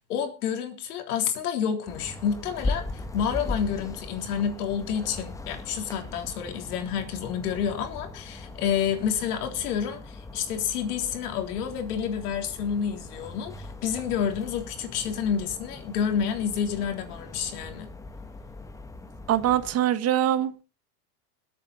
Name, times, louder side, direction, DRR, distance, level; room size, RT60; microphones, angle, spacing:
voice 1, 0.1-17.9, left 8 dB, 75° left, 5 dB, 3.6 m, -29 dB
sound 1, 1.9-19.7, left 2 dB, 5° left, 1.0 m, -39 dB
voice 2, 19.3-20.6, right 11 dB, 30° right, 12 dB, 1.2 m, -23 dB
21.0 x 8.5 x 4.2 m, 0.33 s
supercardioid pair, 130°, 46 cm